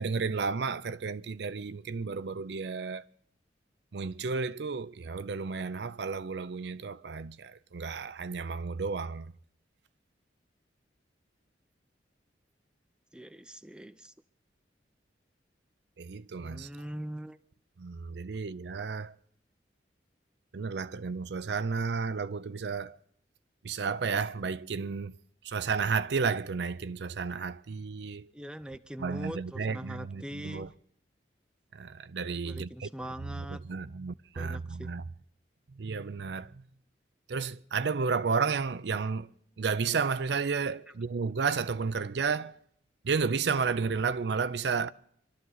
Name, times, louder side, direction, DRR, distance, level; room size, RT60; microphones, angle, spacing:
voice 1, 0.0-3.0 3.9-9.3 16.0-16.7 17.8-19.1 20.5-23.0 23.6-25.1 25.4-28.3 29.0-30.7 31.7-32.9 33.4-35.0 35.8-36.5 37.3-39.3 39.6-42.5 43.0-44.9, right 5 dB, 65° right, 0.5 m, -32 dB
voice 2, 13.1-14.1 16.4-17.4 28.3-30.7 32.4-33.6 34.3-34.9, equal, 5° right, 0.5 m, -42 dB
25.5 x 12.5 x 4.0 m
head